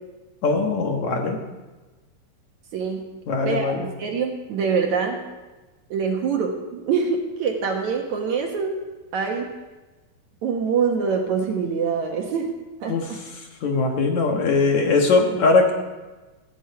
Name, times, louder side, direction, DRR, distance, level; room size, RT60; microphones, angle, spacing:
voice 1, 0.4-1.4 3.3-3.9 12.9-13.1 13.6-15.7, left 3 dB, 60° left, 2 dB, 2.5 m, -20 dB
voice 2, 2.7-3.1 3.4-3.7 4.0-5.2 5.9-8.7 9.1-9.5 10.4-12.5 12.8-13.2, right 5 dB, 60° right, 2 dB, 2.3 m, -24 dB
17.5 x 14.0 x 4.8 m, 1.2 s
omnidirectional pair, 4.3 m